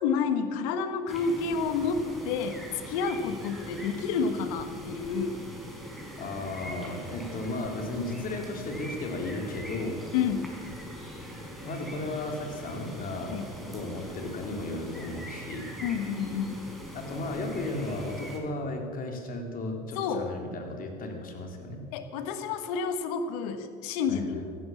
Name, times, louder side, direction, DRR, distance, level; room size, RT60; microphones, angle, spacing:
voice 1, 0.0-5.4 10.1-10.5 13.3-13.5 15.8-16.7 20.0-20.3 21.9-24.4, left 5 dB, 70° left, 9 dB, 1.4 m, -29 dB
sound 1, 1.1-18.4, equal, ahead, 4.3 m, -42 dB
voice 2, 6.2-10.0 11.6-13.4 13.6-15.7 16.9-21.8 24.1-24.4, left 2 dB, 45° left, 3 dB, 3.3 m, -35 dB
15.0 x 12.0 x 7.2 m, 2.2 s
hypercardioid pair, 75°, 20 cm